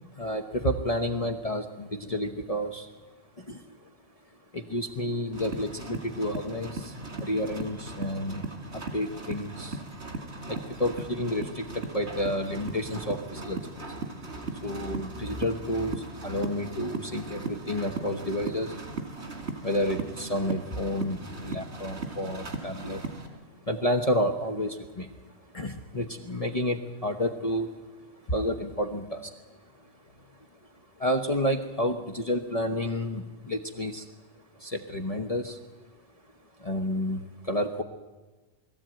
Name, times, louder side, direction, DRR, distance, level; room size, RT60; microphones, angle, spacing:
voice 1, 0.1-2.9 3.4-3.8 4.5-8.5 8.7-9.9 10.4-14.0 14.6-18.8 19.2-19.3 19.6-23.4 23.6-25.1 25.5-27.7 28.2-29.9 31.0-34.1 34.6-35.6 36.6-37.8, left 1 dB, 35° left, 4 dB, 1.2 m, -30 dB
sound 1, 5.3-23.3, right 3 dB, 75° right, 2.8 m, -38 dB
21.5 x 14.5 x 9.0 m, 1.2 s
omnidirectional pair, 1.1 m